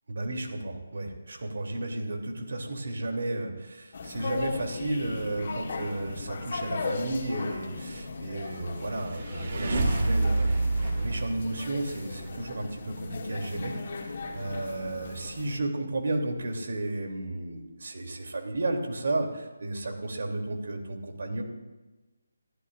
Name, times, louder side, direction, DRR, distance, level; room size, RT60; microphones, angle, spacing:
voice 1, 0.1-10.6 11.0-13.8 14.0-21.4, right 2 dB, 60° right, 2 dB, 3.2 m, -33 dB
sound 1, 3.9-15.6, left 4 dB, 45° left, 2.4 m, -37 dB
sound 2, 8.7-12.3, right 2 dB, 45° right, 3.0 m, -28 dB
24.5 x 14.0 x 2.6 m, 1.2 s
figure-of-eight pair, 155°, 0 cm